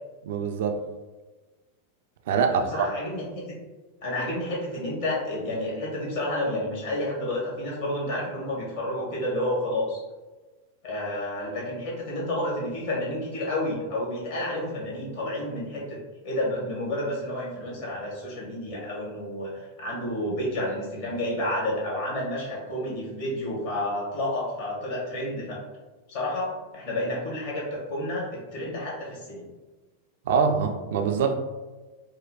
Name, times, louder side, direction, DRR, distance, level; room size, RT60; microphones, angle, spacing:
voice 1, 0.3-0.8 2.3-2.9 30.3-31.3, right 6 dB, 55° right, 6 dB, 0.3 m, -24 dB
voice 2, 2.5-3.4 4.0-10.0 10.8-16.0 16.2-25.6 26.1-29.5, left 1 dB, 55° left, -4 dB, 1.3 m, -30 dB
4.4 x 2.1 x 2.3 m, 1.2 s
figure-of-eight pair, 90°, 0 cm